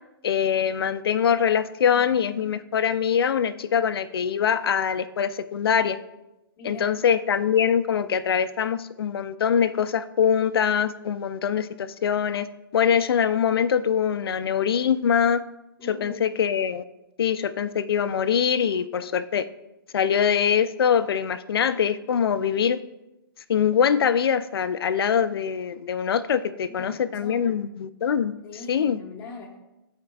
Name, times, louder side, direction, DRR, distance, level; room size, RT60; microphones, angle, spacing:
voice 1, 0.2-6.0 6.6-12.5 12.7-15.4 15.9-16.8 17.2-19.4 19.9-22.8 23.5-28.3 28.7-29.0, left 8 dB, 80° left, 13 dB, 0.5 m, -23 dB
voice 2, 6.6-7.1 15.8-16.4 26.5-27.6 28.4-29.6, left 2 dB, 20° left, -3 dB, 1.3 m, -41 dB
12.5 x 4.4 x 2.4 m, 0.94 s
hypercardioid pair, 140°, 12 cm